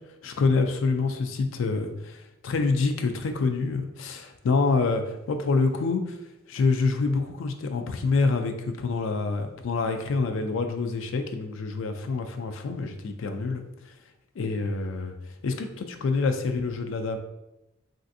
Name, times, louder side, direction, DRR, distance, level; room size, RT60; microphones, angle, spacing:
voice 1, 0.2-6.2 6.5-13.6 14.4-15.1 15.4-17.2, left 4 dB, 80° left, 6 dB, 0.4 m, -26 dB
3.2 x 2.5 x 2.6 m, 0.94 s
head